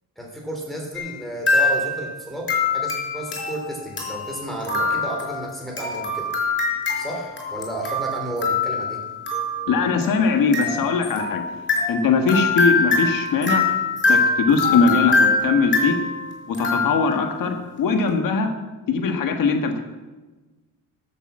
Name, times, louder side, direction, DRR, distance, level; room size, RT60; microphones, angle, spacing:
voice 1, 0.2-6.3 7.0-9.0, right 1 dB, ahead, -2 dB, 3.4 m, -32 dB
sound 1, 0.9-1.2 1.5-2.1 2.5-17.4, left 3 dB, 35° left, 4.3 m, -24 dB
voice 2, 9.7-11.4 11.9-13.7 14.1-16.0 16.5-18.5 18.9-19.8, left 4 dB, 80° left, 5 dB, 1.5 m, -21 dB
12.0 x 6.9 x 7.3 m, 1.2 s
cardioid pair, 110°, 33 cm